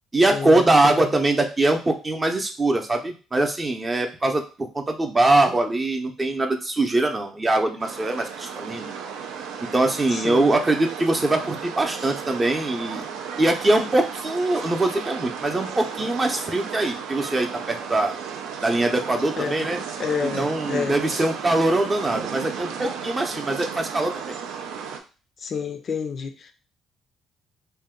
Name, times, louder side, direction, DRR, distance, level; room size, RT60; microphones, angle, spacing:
voice 1, 0.1-8.9 9.6-13.1 13.4-18.2 18.6-19.8 20.4-24.3, right 2 dB, 25° right, 0.6 m, -22 dB
sound 1, 7.8-25.0, right 7 dB, 80° right, 0.4 m, -34 dB
voice 2, 10.1-10.6 19.4-19.7 20.0-21.0 25.4-26.5, left 6 dB, 50° left, 0.3 m, -29 dB
2.6 x 2.2 x 3.5 m
supercardioid pair, 70°, 0 cm